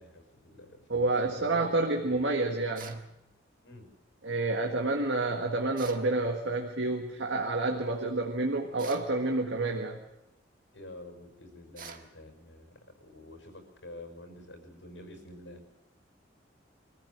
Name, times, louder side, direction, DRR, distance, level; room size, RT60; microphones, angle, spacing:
voice 1, 0.0-1.7 2.1-2.2 3.6-3.9 10.7-15.6, left 1 dB, 80° left, 5 dB, 5.9 m, -48 dB
voice 2, 0.9-3.0 4.2-10.0, right 2 dB, 80° right, 2 dB, 1.8 m, -29 dB
sound 1, 2.7-3.1 5.8-6.1 8.8-9.1 11.8-12.1, right 6 dB, 45° right, 1.7 m, -45 dB
24.5 x 14.5 x 8.1 m, 0.91 s
head